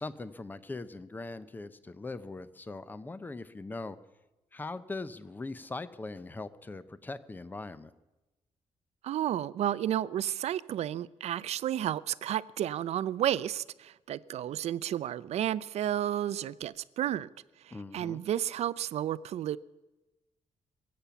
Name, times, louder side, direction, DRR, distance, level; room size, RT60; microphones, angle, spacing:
voice 1, 0.0-4.0 4.5-7.9 17.7-18.2, left 3 dB, 15° left, 0.7 m, -41 dB
voice 2, 9.0-17.3 17.6-19.6, right 11 dB, 70° right, 0.5 m, -32 dB
22.5 x 8.6 x 7.0 m
cardioid pair, 130°, 11 cm